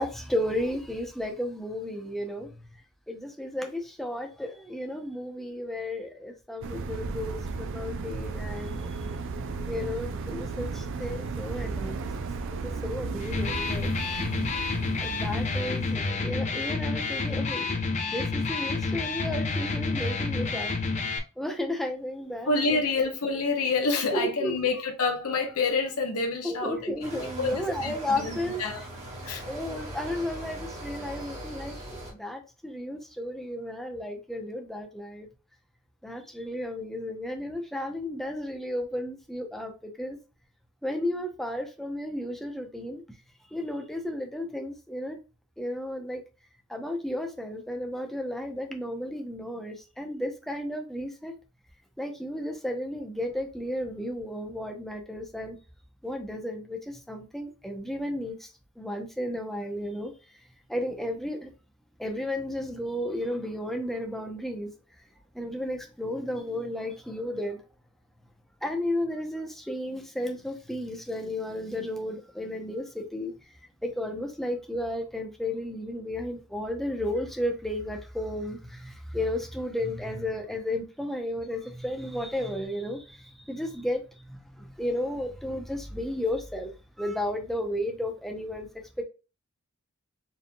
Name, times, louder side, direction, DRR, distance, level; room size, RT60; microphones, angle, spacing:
voice 1, 0.0-2.6 3.1-8.9 9.7-12.0 12.6-13.9 15.0-17.7 18.0-20.7 21.4-22.8 24.1-24.5 26.4-28.6 29.4-35.3 36.0-40.2 40.8-43.0 43.5-45.2 45.6-46.2 46.7-51.4 52.0-55.6 56.0-58.5 58.8-60.1 60.7-61.5 62.0-64.7 65.3-67.6 68.6-73.3 73.8-84.0 84.3-86.7 87.0-88.7 89.0-89.1, left 1 dB, ahead, 0.7 m, -33 dB
sound 1, 6.6-16.2, right 4 dB, 60° right, 0.4 m, -35 dB
Electric guitar, 13.2-21.2, left 3 dB, 35° left, 0.6 m, -29 dB
voice 2, 22.5-28.9 29.2-29.4, left 3 dB, 80° left, 1.0 m, -28 dB
sound 2, 27.0-32.1, right 1 dB, 30° right, 1.8 m, -40 dB
4.4 x 3.5 x 2.3 m
head